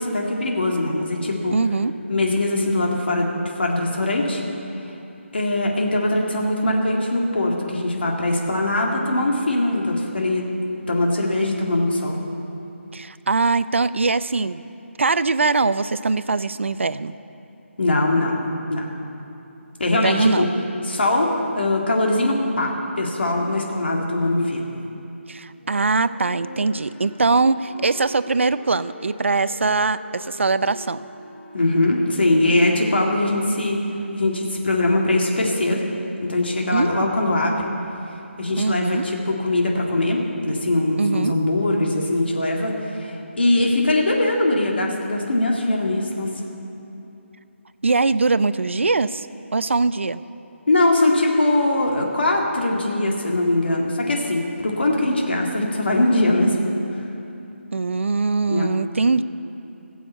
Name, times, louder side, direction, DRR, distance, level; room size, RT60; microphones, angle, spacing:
voice 1, 0.0-1.6 2.1-4.4 5.3-10.5 10.9-12.2 17.8-18.4 18.7-18.9 19.8-20.5 20.8-21.3 21.5-24.7 31.5-33.8 34.1-35.8 36.2-37.5 38.4-46.3 50.7-56.6 58.5-58.7, left 2 dB, 50° left, -1 dB, 2.0 m, -21 dB
voice 2, 1.5-1.9 12.9-14.6 15.0-17.2 19.9-20.5 25.3-31.0 36.7-37.1 38.6-39.1 41.0-41.3 47.8-49.3 49.5-50.2 57.7-59.2, right 3 dB, 65° right, 14 dB, 0.5 m, -22 dB
Wind instrument woodwind instrument, 25.6-34.1, left 1 dB, 25° left, 1.9 m, -42 dB
15.5 x 7.2 x 8.2 m, 2.9 s
figure-of-eight pair, 180°, 7 cm